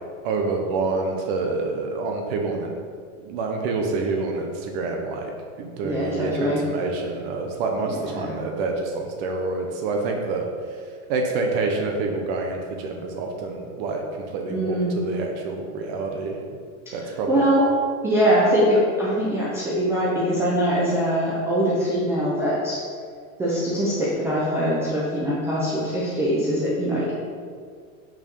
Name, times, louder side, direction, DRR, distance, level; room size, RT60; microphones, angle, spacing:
voice 1, 0.2-2.7 3.2-5.3 5.6-10.5 11.1-16.4 16.9-17.4, right 3 dB, 40° right, 2 dB, 0.8 m, -27 dB
voice 2, 5.8-6.6 8.0-8.4 14.5-14.9 16.9-17.7 18.0-22.8 23.4-27.1, equal, 5° right, -7 dB, 0.4 m, -23 dB
5.8 x 4.6 x 5.2 m, 2.1 s
supercardioid pair, 150°, 44 cm